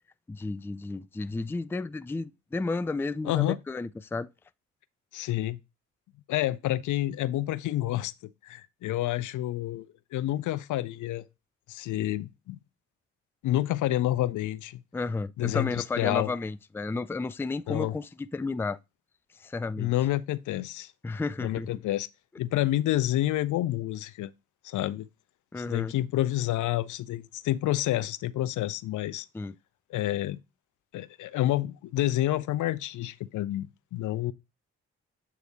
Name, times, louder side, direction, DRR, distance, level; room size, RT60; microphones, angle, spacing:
voice 1, 0.3-4.3 14.9-18.8 19.4-19.9 21.0-21.7 25.5-25.9 29.3-29.6, left 3 dB, 5° left, 0.4 m, -32 dB
voice 2, 3.2-3.6 5.1-5.6 6.3-8.1 8.4-9.9 10.1-11.2 11.7-12.6 13.4-14.8 15.4-16.3 17.7-18.0 19.8-20.9 21.4-22.1 22.4-24.3 24.6-25.1 25.6-29.3 29.9-30.4 30.9-34.3, left 14 dB, 70° left, 0.5 m, -29 dB
8.3 x 3.2 x 4.1 m
hypercardioid pair, 45°, 32 cm